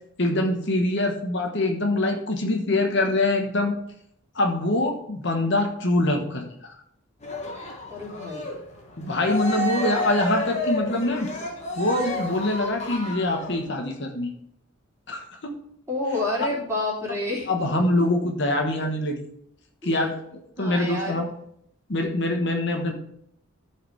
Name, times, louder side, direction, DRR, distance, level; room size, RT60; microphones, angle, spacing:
voice 1, 0.2-3.7 4.3-6.8 9.0-11.3 11.7-14.3 15.1-15.6 17.5-19.3 19.8-21.3 21.9-22.9, left 2 dB, 55° left, 3 dB, 1.3 m, -24 dB
Cheering, 7.2-13.6, equal, 30° left, 1.7 m, -31 dB
voice 2, 7.8-8.6 15.9-18.0 19.8-20.0 20.6-21.2, left 2 dB, 15° right, -4 dB, 3.1 m, -29 dB
14.0 x 4.9 x 4.6 m, 0.70 s
head